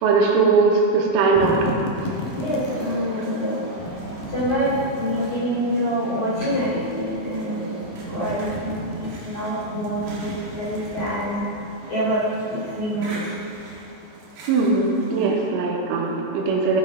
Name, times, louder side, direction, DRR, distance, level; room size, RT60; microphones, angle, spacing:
voice 1, 0.0-1.7 3.2-3.3 14.5-16.8, right 4 dB, 80° right, -1 dB, 3.5 m, -20 dB
sound 1, 1.0-3.0 3.8-5.4 6.3-7.4 7.8-9.3 9.8-11.6, left 1 dB, 75° left, 2.2 m, -34 dB
sound 2, 1.9-15.5, right 3 dB, 55° right, 2.5 m, -38 dB
voice 2, 2.3-3.6 4.3-7.8 8.1-11.5 11.9-13.3, equal, 40° left, -11 dB, 2.4 m, -26 dB
13.5 x 5.6 x 5.0 m, 2.7 s
omnidirectional pair, 5.8 m